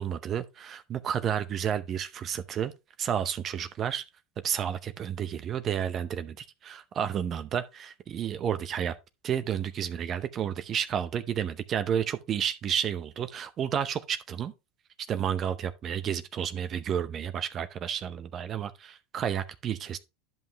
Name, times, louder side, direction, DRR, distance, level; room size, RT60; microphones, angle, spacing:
voice 1, 0.0-2.7 3.0-4.0 4.4-8.9 9.2-14.5 15.1-20.0, right 9 dB, 40° right, 0.7 m, -31 dB
10.5 x 5.6 x 2.9 m
hypercardioid pair, 100°, 0 cm